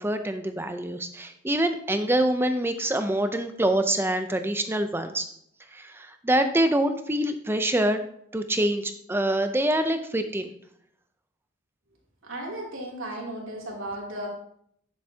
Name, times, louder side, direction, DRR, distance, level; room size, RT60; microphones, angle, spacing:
voice 1, 0.0-5.3 5.7-8.0 8.3-10.5, right 1 dB, 10° right, 8 dB, 0.4 m, -25 dB
voice 2, 12.2-14.3, right 1 dB, 70° right, -3 dB, 2.8 m, -35 dB
10.5 x 7.6 x 2.8 m, 0.69 s
head